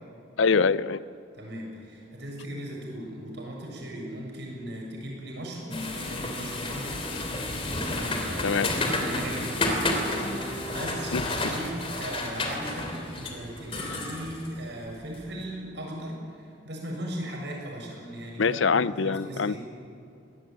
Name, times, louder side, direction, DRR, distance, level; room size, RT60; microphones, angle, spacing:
voice 1, 0.4-1.0 8.4-8.7 11.1-11.2 18.4-19.5, left 5 dB, 80° left, 17 dB, 0.6 m, -24 dB
voice 2, 1.3-19.6, right 1 dB, 60° right, -1 dB, 7.5 m, -38 dB
sound 1, 5.7-15.3, left 2 dB, 30° left, 3.2 m, -31 dB
Guitar, 10.1-14.8, right 1 dB, 50° left, 7.8 m, -44 dB
22.5 x 18.5 x 9.2 m, 2.6 s
head